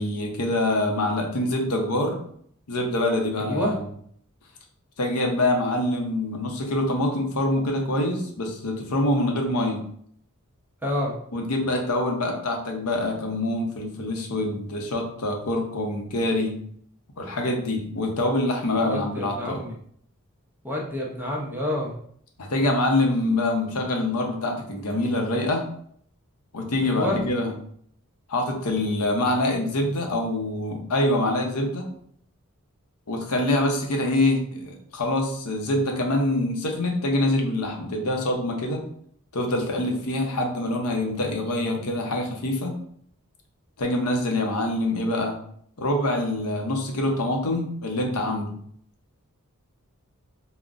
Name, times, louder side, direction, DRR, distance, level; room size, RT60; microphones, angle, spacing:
voice 1, 0.0-2.2 2.7-3.8 5.0-9.8 11.3-16.6 17.2-19.6 22.4-25.6 26.5-27.5 28.3-31.9 33.1-38.8 39.3-42.7 43.8-45.4 45.8-48.6, left 1 dB, 85° left, 2 dB, 0.7 m, -25 dB
voice 2, 3.4-3.8 10.8-11.1 18.8-19.7 20.6-21.9 26.8-27.2, left 1 dB, 10° right, -3 dB, 0.6 m, -28 dB
3.7 x 2.1 x 2.4 m, 0.64 s
head